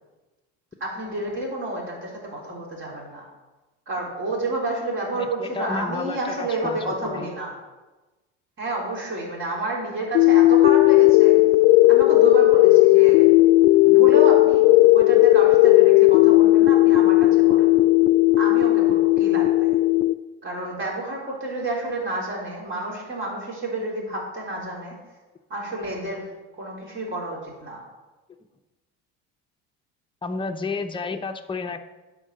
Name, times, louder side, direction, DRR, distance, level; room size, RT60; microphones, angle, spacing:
voice 1, 0.8-3.2 3.9-7.5 8.6-11.4 11.9-13.3 13.8-17.8 18.4-19.8 20.4-25.0 25.5-26.3 26.6-27.8, right 2 dB, 35° right, -2 dB, 3.9 m, -30 dB
voice 2, 5.2-7.3 30.2-31.8, left 4 dB, 15° left, 5 dB, 0.8 m, -31 dB
sound 1, 10.1-20.1, left 19 dB, 65° left, 0.5 m, -15 dB
10.0 x 4.9 x 7.6 m, 1.2 s
supercardioid pair, 110°, 32 cm